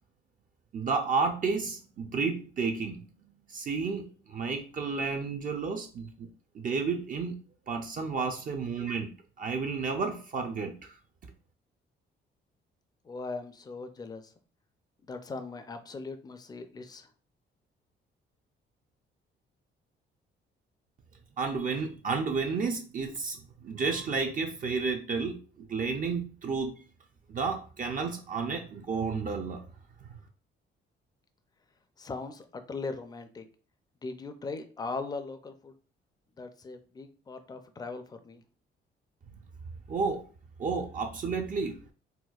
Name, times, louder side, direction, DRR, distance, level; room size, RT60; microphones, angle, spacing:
voice 1, 0.7-3.0 3.5-6.3 6.5-7.4 7.7-9.1 9.4-10.9 21.4-26.7 27.3-29.6 30.0-30.2 39.9-40.3 40.6-41.8, right 4 dB, 45° right, 3 dB, 0.5 m, -31 dB
voice 2, 13.0-14.3 15.1-17.1 32.0-33.5 34.0-35.7 36.4-38.4, left 3 dB, 20° left, 9 dB, 0.4 m, -39 dB
4.1 x 2.2 x 2.3 m, 0.39 s
cardioid pair, 90°, 20 cm